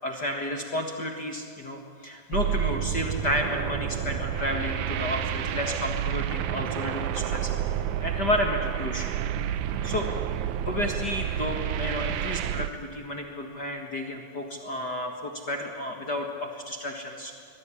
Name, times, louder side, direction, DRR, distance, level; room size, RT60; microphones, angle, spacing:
voice 1, 0.0-7.5 8.0-9.1 9.8-10.1 10.6-17.3, left 1 dB, 45° left, 2 dB, 1.4 m, -31 dB
sound 1, 2.3-12.7, right 10 dB, 75° right, 1.7 m, -29 dB
25.0 x 20.5 x 9.9 m, 2.2 s
omnidirectional pair, 4.5 m